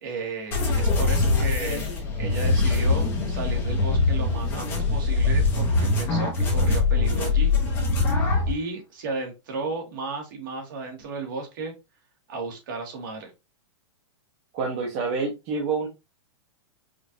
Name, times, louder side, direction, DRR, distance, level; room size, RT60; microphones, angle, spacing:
voice 1, 0.0-1.9 2.2-7.5 8.5-11.7 12.3-13.3, right 4 dB, 45° right, 1.4 m, -34 dB
sound 1, 0.5-8.5, left 3 dB, 15° left, 0.8 m, -23 dB
voice 2, 14.5-15.9, right 4 dB, 25° right, 0.7 m, -27 dB
5.0 x 2.4 x 2.6 m
supercardioid pair, 175°, 16 cm